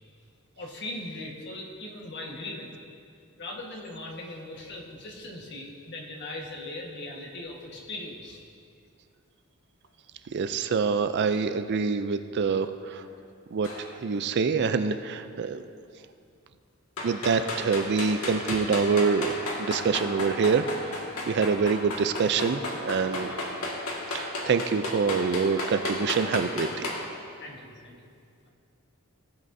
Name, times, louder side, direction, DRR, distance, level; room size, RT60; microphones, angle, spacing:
voice 1, 0.6-2.8 3.4-8.4 23.0-23.4 27.4-28.0 28.4-28.5, left 2 dB, 50° left, -1 dB, 1.4 m, -39 dB
voice 2, 10.3-13.0 13.5-15.6 17.0-21.0 21.3-23.3 24.1-26.9, right 5 dB, 50° right, 10 dB, 0.4 m, -26 dB
sound 1, 13.6-13.9 17.0-27.0, left 2 dB, 80° left, 1.8 m, -33 dB
17.0 x 7.9 x 2.7 m, 2.3 s
head